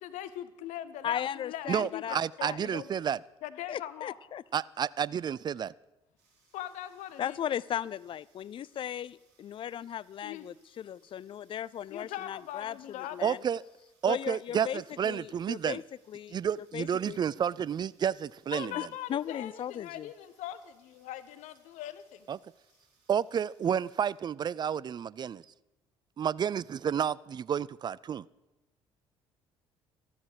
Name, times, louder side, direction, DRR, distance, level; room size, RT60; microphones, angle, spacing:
voice 1, 0.0-2.9 3.4-4.1 6.5-7.4 10.2-10.4 11.9-13.3 18.5-22.3, left 12 dB, 60° left, 0.8 m, -41 dB
voice 2, 1.0-2.7 3.7-4.4 7.2-13.4 14.1-15.8 16.1-17.2 18.7-20.1, left 10 dB, 40° left, 0.4 m, -37 dB
voice 3, 1.7-3.2 4.5-5.7 13.2-13.6 14.0-15.8 16.3-18.7 22.3-22.4 23.1-25.4 26.2-28.3, right 8 dB, 30° right, 0.4 m, -30 dB
sound 1, 6.2-24.1, right 4 dB, 70° right, 4.6 m, -70 dB
13.0 x 13.0 x 4.9 m
figure-of-eight pair, 50°, 14 cm